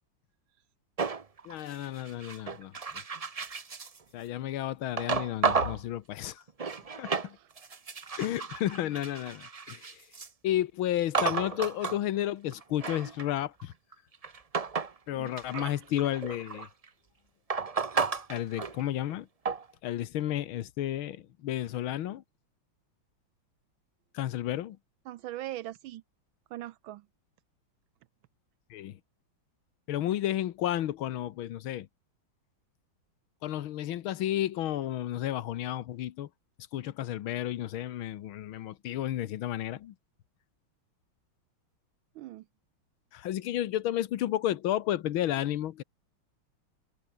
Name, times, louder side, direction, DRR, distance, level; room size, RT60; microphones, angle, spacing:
sound 1, 1.0-4.0 5.0-5.8 6.3-7.3 7.6-10.3 11.1-12.0 12.5-15.0 15.3-16.8 17.5-19.1 19.5-19.7, right 5 dB, 60° right, 0.3 m, -33 dB
voice 1, 1.5-2.7 4.1-6.4 7.0-7.4 8.2-10.0 10.4-13.7 15.1-16.7 18.3-19.3 19.8-22.2 24.1-24.8 28.7-29.0 29.9-31.9 33.4-36.3 36.7-40.0 43.1-45.8, left 12 dB, 85° left, 1.8 m, -32 dB
voice 2, 15.2-15.9 25.1-26.0 26.5-27.0 42.1-42.4, right 14 dB, 80° right, 1.4 m, -41 dB
omnidirectional pair, 2.2 m